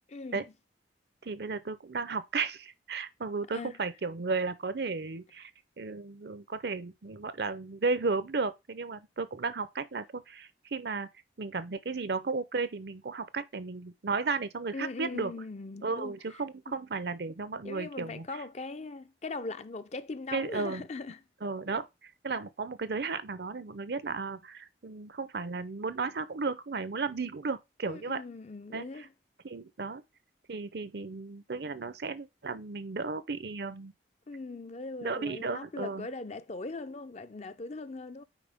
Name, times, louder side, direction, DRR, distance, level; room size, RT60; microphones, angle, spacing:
voice 1, 0.1-0.5 3.5-3.8 14.7-16.1 16.7-16.8 17.6-21.2 27.9-29.1 34.3-38.2, left 3 dB, 35° left, 0.5 m, -40 dB
voice 2, 1.2-5.5 5.8-11.1 11.4-15.3 15.8-18.3 20.3-20.9 21.4-28.2 28.7-28.8 29.4-30.0 30.5-33.9 35.0-36.1, right 4 dB, 60° right, 0.6 m, -34 dB
9.0 x 4.6 x 3.5 m
head